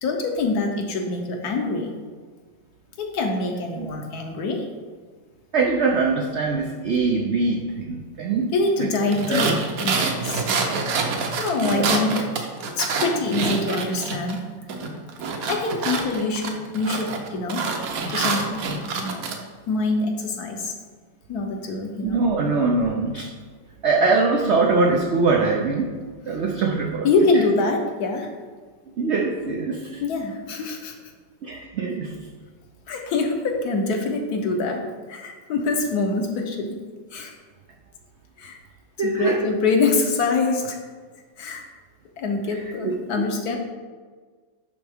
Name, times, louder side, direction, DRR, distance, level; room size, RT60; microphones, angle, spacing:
voice 1, 0.0-2.0 3.0-4.7 8.5-9.6 9.8-10.4 11.4-12.3 12.8-14.6 15.5-17.7 18.1-18.7 19.0-19.3 19.7-20.7 21.3-22.3 27.0-28.3 30.0-30.9 32.9-36.8 37.1-37.3 38.4-38.6 39.0-40.8 41.4-41.6 42.2-43.6, left 3 dB, 65° left, 3 dB, 1.2 m, -25 dB
voice 2, 5.5-8.5 8.8-8.9 9.3-9.6 11.6-12.2 13.3-13.6 22.0-23.3 23.8-26.0 26.3-27.1 29.0-30.0 31.4-32.1 39.0-39.4 42.5-43.3, right 3 dB, 90° right, 1 dB, 0.6 m, -23 dB
sound 1, 9.1-14.4 14.7-19.4, right 4 dB, 60° right, 1.0 m, -27 dB
10.0 x 3.5 x 3.5 m, 1.5 s
omnidirectional pair, 1.9 m